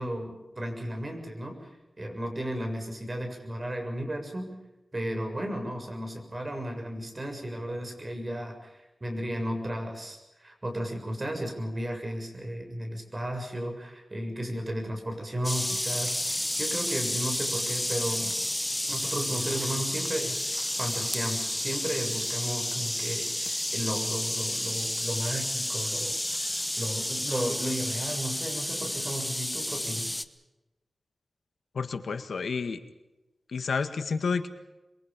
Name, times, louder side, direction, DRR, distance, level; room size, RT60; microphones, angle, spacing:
voice 1, 0.0-4.5 4.9-18.3 18.9-30.2, equal, 30° right, 4 dB, 7.0 m, -34 dB
sound 1, 15.4-30.2, left 1 dB, 10° left, 1.2 m, -31 dB
voice 2, 31.7-32.8 33.5-34.5, left 5 dB, 90° left, 8 dB, 1.9 m, -30 dB
27.5 x 23.0 x 5.4 m, 1.0 s
wide cardioid pair, 110°, 0 cm